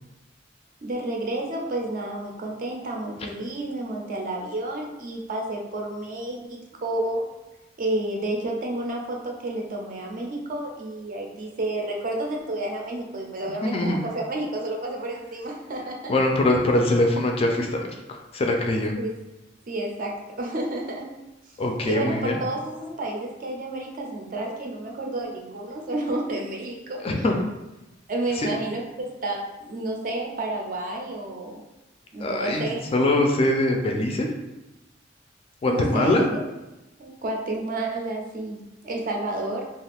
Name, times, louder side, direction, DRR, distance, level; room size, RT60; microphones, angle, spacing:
voice 1, 0.8-7.2 7.8-16.1 18.8-19.1 19.7-21.1 21.8-27.2 28.1-31.6 32.1-32.9 35.7-36.4 37.0-39.6, right 1 dB, 45° right, 0 dB, 0.5 m, -30 dB
voice 2, 13.6-14.0 16.1-17.8 18.1-19.0 21.6-22.4 27.0-27.4 28.4-28.5 32.2-34.3 35.6-36.2, left 1 dB, 30° left, 2 dB, 0.3 m, -23 dB
2.5 x 2.3 x 3.4 m, 1.0 s
head